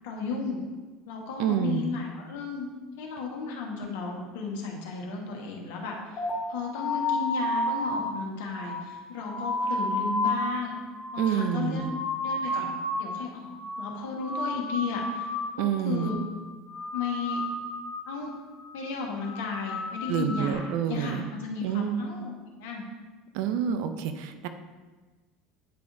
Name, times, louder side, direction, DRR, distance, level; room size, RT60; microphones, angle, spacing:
voice 1, 0.0-0.6 1.0-2.7 3.0-10.7 11.1-11.9 12.2-13.5 13.8-15.3 15.6-16.2 16.9-17.4 18.1-18.3 18.7-22.3 22.6-22.9, left 4 dB, 65° left, 0 dB, 1.3 m, -34 dB
voice 2, 1.4-1.9 11.2-11.9 15.6-16.1 20.1-21.3 21.6-22.0 23.3-24.5, right 9 dB, 60° right, 8 dB, 0.5 m, -28 dB
sound 1, 6.2-13.1 13.4-13.9 14.2-15.7 15.9-16.4 16.7-18.1 18.5-18.8 19.2-20.5, left 2 dB, 35° left, 2.0 m, -32 dB
9.0 x 4.9 x 2.6 m, 1.3 s
figure-of-eight pair, 70°, 0 cm